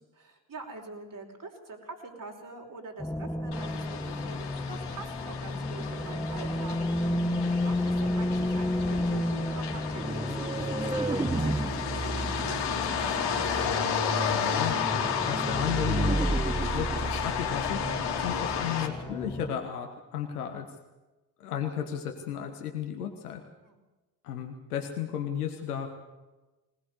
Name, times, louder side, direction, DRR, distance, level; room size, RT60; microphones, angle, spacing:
voice 1, 0.2-6.8 7.3-10.8 11.1-13.1 23.6-23.8, right 3 dB, 45° right, 2 dB, 5.3 m, -45 dB
sound 1, 3.0-19.5, left 1 dB, 10° left, 1.7 m, -33 dB
sound 2, 3.5-18.9, left 7 dB, 65° left, 3.3 m, -33 dB
sound 3, 10.0-18.7, right 2 dB, 10° right, 0.8 m, -33 dB
voice 2, 14.3-17.8 18.2-20.7 21.4-23.4 24.2-26.0, left 9 dB, 90° left, 4 dB, 1.5 m, -34 dB
20.0 x 19.0 x 8.1 m, 1.1 s
hypercardioid pair, 45°, 44 cm